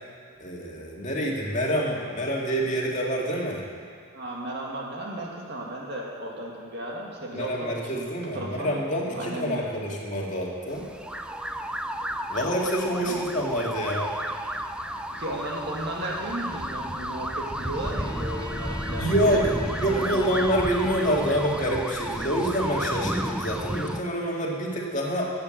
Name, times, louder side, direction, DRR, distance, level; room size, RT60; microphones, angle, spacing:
voice 1, 0.4-3.6 7.3-10.9 12.3-14.1 19.0-19.5 19.8-25.3, equal, 35° left, -2 dB, 2.1 m, -27 dB
voice 2, 4.1-8.0 8.3-8.7 9.1-9.6 12.4-12.5 13.0-13.2 15.2-19.4 19.7-20.3, right 1 dB, 55° right, -2 dB, 2.2 m, -35 dB
sound 1, 10.7-24.0, right 1 dB, 5° right, 0.4 m, -32 dB
Bowed string instrument, 17.8-22.1, left 1 dB, 20° left, 1.8 m, -41 dB
14.0 x 8.3 x 7.7 m, 2.3 s
head